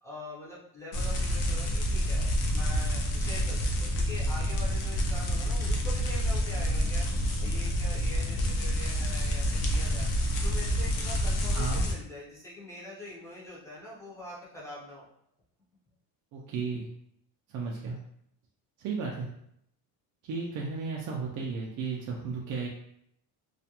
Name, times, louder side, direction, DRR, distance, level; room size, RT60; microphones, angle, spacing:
voice 1, 0.0-7.1 7.4-10.1 10.4-15.1, left 1 dB, 10° left, -7 dB, 0.5 m, -44 dB
sound 1, 0.9-11.9, equal, 60° left, 0.6 m, -28 dB
voice 2, 11.5-11.9 16.3-16.9 17.5-18.0 18.8-19.3 20.2-22.7, right 4 dB, 55° right, -2 dB, 0.5 m, -34 dB
2.3 x 2.2 x 2.8 m, 0.73 s
cardioid pair, 160°, 37 cm